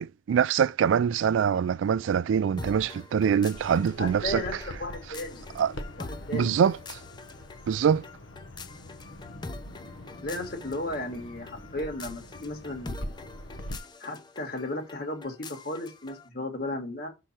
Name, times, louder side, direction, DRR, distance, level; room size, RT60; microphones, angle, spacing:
voice 1, 0.0-4.4 5.6-5.7 6.3-6.8 7.7-8.0, right 7 dB, 80° right, 0.3 m, -24 dB
sound 1, 2.6-16.3, left 3 dB, 25° left, 0.6 m, -45 dB
Bird vocalization bird call bird song, 3.5-13.8, left 1 dB, 90° left, 1.2 m, -43 dB
voice 2, 4.0-5.4 6.0-6.6 10.2-13.1 14.0-17.1, left 1 dB, 50° left, 2.5 m, -35 dB
5.7 x 4.5 x 6.1 m
head